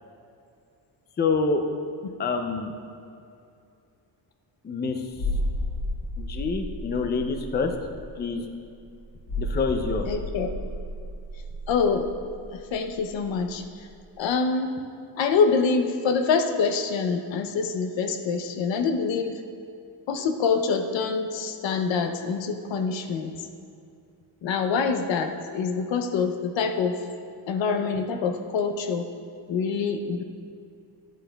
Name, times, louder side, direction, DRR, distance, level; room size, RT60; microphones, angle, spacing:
voice 1, 1.2-1.6 2.2-2.7 4.6-5.0 6.2-7.7 8.2-8.4 9.4-10.1, left 4 dB, 25° left, 5 dB, 0.5 m, -26 dB
sound 1, 5.1-13.6 13.8-14.0, left 1 dB, 45° left, 1.2 m, -33 dB
voice 2, 10.1-10.5 11.7-12.0 12.5-13.6 14.2-14.7 15.2-19.3 20.1-23.3 24.4-27.0 27.5-29.0 29.5-30.2, left 5 dB, 80° left, 6 dB, 0.8 m, -25 dB
11.0 x 9.0 x 2.3 m, 2.5 s
cardioid pair, 135°, 44 cm